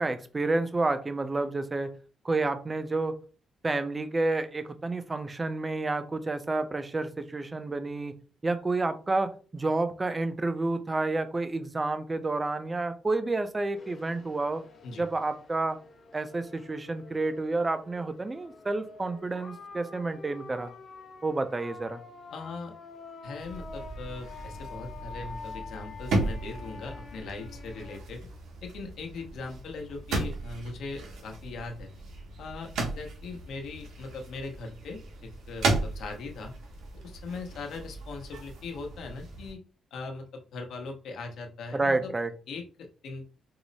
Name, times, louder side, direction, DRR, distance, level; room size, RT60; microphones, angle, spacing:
voice 1, 0.0-1.9 2.2-3.2 3.6-8.1 8.4-14.6 15.0-15.8 16.1-20.7 21.2-22.0 41.7-42.3, right 2 dB, 20° right, 10 dB, 0.4 m, -29 dB
sound 1, 13.8-28.0, left 4 dB, 50° left, 1.1 m, -47 dB
voice 2, 22.3-22.7 23.2-28.3 28.6-31.9 32.4-36.5 36.9-39.6 39.9-42.1 42.5-43.2, left 3 dB, 70° left, 3 dB, 0.9 m, -40 dB
sound 2, 23.4-39.5, right 2 dB, 85° right, 1.3 m, -36 dB
4.6 x 2.0 x 4.0 m, 0.37 s
cardioid pair, 145°, 0 cm